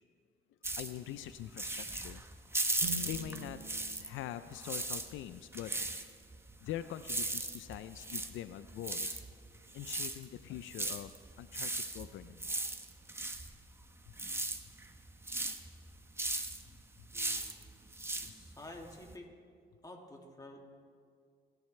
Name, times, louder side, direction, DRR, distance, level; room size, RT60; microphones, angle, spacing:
sound 1, 0.6-4.2 4.5-19.1, right 2 dB, 10° right, 1.0 m, -38 dB
voice 1, 0.8-2.2 3.0-3.6 4.0-5.7 6.6-9.2 9.7-12.6 14.1-14.2 17.0-17.1 18.2-18.3, left 12 dB, 80° left, 12 dB, 0.5 m, -44 dB
sound 2, 2.8-6.8, right 2 dB, 90° right, 2.3 m, -48 dB
voice 2, 17.1-17.6 18.2-19.3 19.8-20.7, left 1 dB, 20° left, 1 dB, 2.3 m, -50 dB
28.0 x 10.5 x 3.2 m, 2.2 s
cardioid pair, 90°, 20 cm